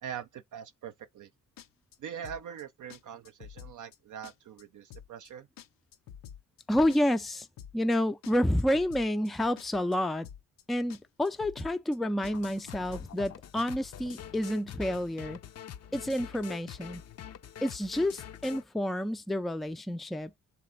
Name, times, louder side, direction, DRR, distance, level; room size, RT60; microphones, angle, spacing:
voice 1, 0.0-1.3 2.0-5.5, right 8 dB, 65° right, 0.7 m, -42 dB
sound 1, 1.6-2.0 2.2-2.6 2.9-3.0 3.2-4.0 4.2-4.6 4.9-5.3 5.6-7.3 7.6-8.0 8.2-9.3 9.6-10.0 10.2-10.6 10.9-11.0 11.2-12.0 12.2-12.6 12.9-13.3 13.6-13.7, left 9 dB, 85° left, 0.7 m, -48 dB
voice 2, 6.7-7.5 7.7-10.3 10.7-15.4 15.9-17.0 17.6-20.3, left 1 dB, ahead, 0.4 m, -29 dB
sound 2, 12.2-18.6, left 10 dB, 50° left, 0.6 m, -45 dB
6.7 x 4.1 x 4.0 m
cardioid pair, 105°, 33 cm